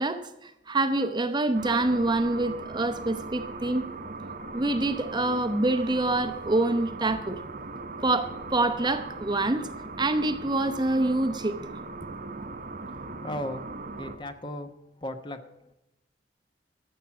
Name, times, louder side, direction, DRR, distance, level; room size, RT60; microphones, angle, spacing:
voice 1, 0.0-3.9 4.5-7.4 8.0-9.7 10.0-11.6 12.2-12.3 13.1-13.2, right 2 dB, 25° right, 9 dB, 0.8 m, -26 dB
sound 1, 1.5-14.2, right 3 dB, 50° right, 1.0 m, -39 dB
voice 2, 12.9-13.6 13.9-14.7 15.0-15.7, left 1 dB, 25° left, 7 dB, 1.1 m, -37 dB
13.5 x 7.5 x 7.2 m, 0.87 s
head